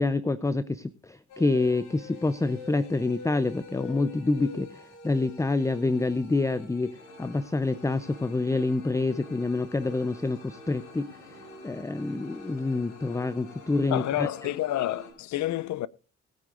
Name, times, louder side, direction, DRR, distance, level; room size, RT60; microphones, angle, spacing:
voice 1, 0.0-14.3, left 3 dB, 10° left, 0.6 m, -27 dB
sound 1, 1.3-15.1, left 3 dB, 90° left, 4.2 m, -46 dB
voice 2, 13.9-15.9, left 14 dB, 70° left, 0.6 m, -29 dB
20.0 x 9.6 x 2.5 m
cardioid pair, 90°, 30 cm